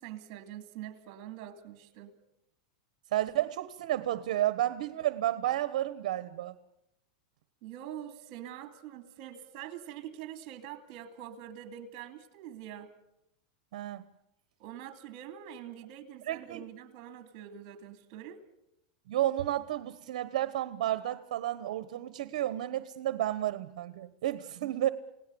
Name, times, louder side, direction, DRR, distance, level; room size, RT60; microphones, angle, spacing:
voice 1, 0.0-2.2 7.6-12.9 14.6-18.4 24.6-24.7, right 11 dB, 50° right, 10 dB, 2.6 m, -45 dB
voice 2, 3.1-6.5 13.7-14.0 16.3-16.6 19.1-24.9, right 13 dB, 75° right, 14 dB, 1.1 m, -31 dB
29.0 x 18.0 x 7.0 m, 0.84 s
supercardioid pair, 145°, 4 cm